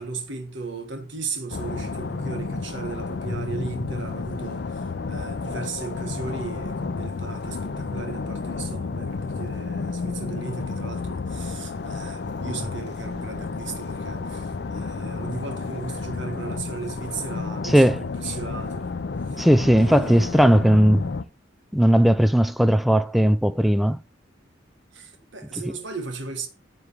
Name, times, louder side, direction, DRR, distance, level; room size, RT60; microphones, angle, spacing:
voice 1, 0.0-19.5 19.8-20.5 24.9-26.5, right 4 dB, 75° right, 1.3 m, -36 dB
sound 1, 1.5-21.2, left 4 dB, 60° left, 0.5 m, -31 dB
voice 2, 17.6-18.0 19.4-21.0 21.7-24.0, equal, ahead, 0.4 m, -17 dB
9.6 x 3.2 x 6.9 m
head